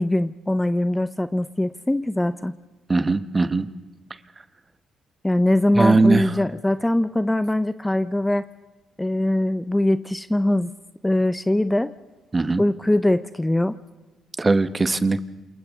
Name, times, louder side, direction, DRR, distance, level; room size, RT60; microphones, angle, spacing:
voice 1, 0.0-2.5 5.2-8.4 9.0-10.7 11.0-11.9 12.6-13.8, left 1 dB, 10° left, 13 dB, 0.6 m, -22 dB
voice 2, 2.9-3.7 5.7-6.4 12.3-12.7 14.4-15.2, right 3 dB, 25° right, 12 dB, 1.0 m, -20 dB
28.0 x 27.5 x 3.6 m, 1.2 s
cardioid pair, 90°, 0 cm